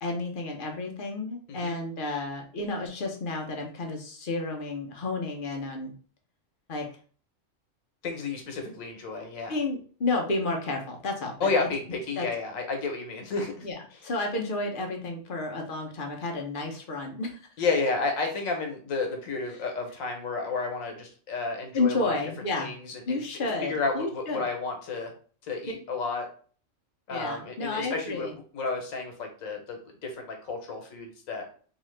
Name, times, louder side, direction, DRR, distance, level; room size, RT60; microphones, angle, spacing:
voice 1, 0.0-5.9 6.7-6.9 9.5-11.7 12.2-12.3 13.6-17.4 21.7-22.7 23.1-24.4 27.1-28.3, left 3 dB, 55° left, 2 dB, 0.6 m, -31 dB
voice 2, 8.0-9.6 11.4-13.7 17.6-22.1 22.6-23.2 23.6-25.1 25.4-26.2 27.1-28.3 28.5-31.5, left 4 dB, 85° left, 3 dB, 1.2 m, -31 dB
2.8 x 2.4 x 3.1 m, 0.43 s
omnidirectional pair, 1.4 m